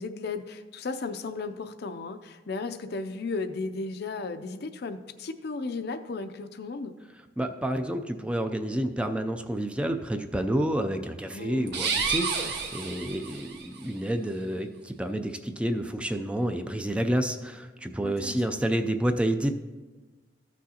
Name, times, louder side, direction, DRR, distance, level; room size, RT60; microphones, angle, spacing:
voice 1, 0.0-6.9 11.3-11.7 18.0-18.6, left 3 dB, 60° left, 9 dB, 0.5 m, -35 dB
voice 2, 7.4-19.5, right 1 dB, 5° right, 6 dB, 0.4 m, -29 dB
sound 1, 11.7-13.7, right 5 dB, 65° right, 0.9 m, -30 dB
14.0 x 6.2 x 2.8 m, 1.3 s
head